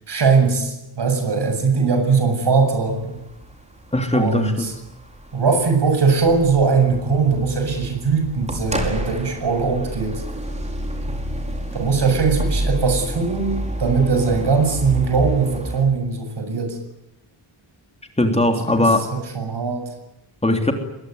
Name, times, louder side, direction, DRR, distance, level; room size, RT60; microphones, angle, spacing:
voice 1, 0.1-3.1 4.1-4.7 5.3-10.2 11.1-11.2 11.7-16.8 18.6-19.9, right 5 dB, 55° right, 6 dB, 7.5 m, -20 dB
sound 1, 2.9-15.8, right 1 dB, 15° right, 4.9 m, -29 dB
voice 2, 3.9-4.7 18.2-19.1 20.4-20.7, left 1 dB, 15° left, 4 dB, 3.3 m, -19 dB
23.5 x 21.5 x 9.6 m, 0.91 s
wide cardioid pair, 135°, 48 cm